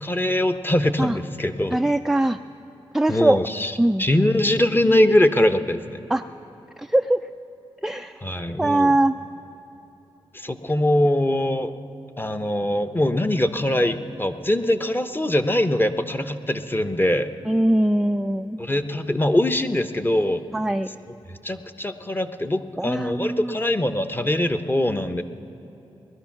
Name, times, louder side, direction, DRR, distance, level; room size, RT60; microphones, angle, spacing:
voice 1, 0.0-1.8 3.1-6.1 8.2-9.0 10.3-11.7 12.2-17.3 18.6-20.4 21.4-25.2, left 1 dB, 20° left, 8 dB, 0.8 m, -22 dB
voice 2, 1.7-2.4 2.9-3.4 3.8-4.0 6.1-6.2 6.9-7.2 7.8-8.1 8.6-9.1 17.5-18.6 20.5-20.9 22.8-23.5, right 1 dB, 5° right, 8 dB, 0.3 m, -21 dB
20.5 x 12.0 x 5.9 m, 3.0 s
cardioid pair, 50°, 11 cm